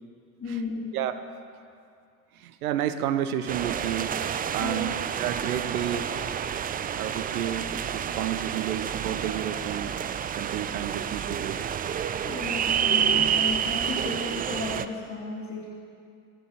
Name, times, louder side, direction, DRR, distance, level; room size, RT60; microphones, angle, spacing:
voice 1, 0.4-0.9 4.6-5.0 12.2-15.6, left 4 dB, 30° left, -5 dB, 3.1 m, -34 dB
voice 2, 2.4-4.1 4.5-4.9 5.2-6.1 6.9-9.9 10.4-11.7, right 10 dB, 70° right, 11 dB, 1.1 m, -31 dB
sound 1, 3.5-14.9, right 8 dB, 20° right, 0.5 m, -29 dB
27.0 x 10.0 x 4.5 m, 2.4 s
figure-of-eight pair, 70°, 45 cm